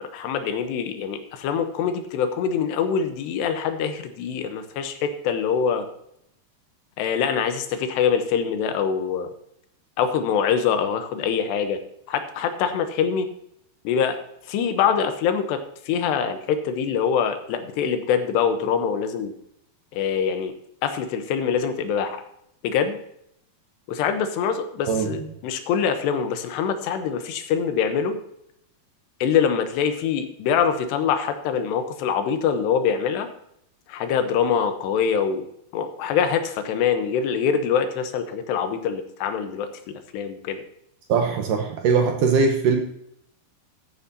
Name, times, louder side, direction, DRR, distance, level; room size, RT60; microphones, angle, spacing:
voice 1, 0.0-5.9 7.0-9.3 10.0-11.8 12.1-13.3 13.8-14.2 14.5-15.6 15.9-19.3 19.9-20.5 20.8-22.2 22.6-23.0 23.9-28.2 29.2-33.3 33.9-35.5 35.7-40.6, left 7 dB, 90° left, 8 dB, 3.2 m, -24 dB
voice 2, 41.1-42.8, right 5 dB, 70° right, 4 dB, 2.1 m, -20 dB
14.0 x 9.8 x 2.8 m, 0.74 s
omnidirectional pair, 4.8 m